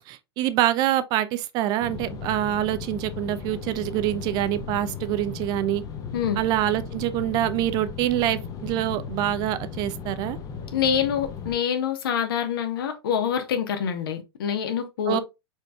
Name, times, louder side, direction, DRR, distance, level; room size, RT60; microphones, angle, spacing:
voice 1, 0.1-5.8 6.4-10.4 15.1-15.2, right 13 dB, 30° right, 0.4 m, -25 dB
sound 1, 1.8-11.6, left 6 dB, 25° left, 0.9 m, -36 dB
voice 2, 10.7-15.2, left 8 dB, 55° left, 1.2 m, -26 dB
4.8 x 4.4 x 2.3 m
figure-of-eight pair, 100°, 14 cm